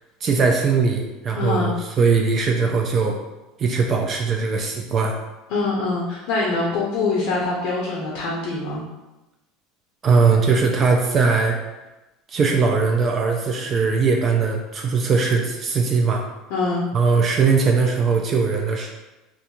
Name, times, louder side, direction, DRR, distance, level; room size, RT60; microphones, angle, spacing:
voice 1, 0.2-3.2 3.6-5.2 10.0-11.6 12.3-16.2 16.9-18.9, right 4 dB, 35° right, 1 dB, 0.3 m, -20 dB
voice 2, 1.4-1.7 5.5-8.8 16.5-16.9, left 3 dB, 65° left, -3 dB, 0.5 m, -24 dB
2.5 x 2.2 x 2.8 m, 1.0 s
supercardioid pair, 115°, 0 cm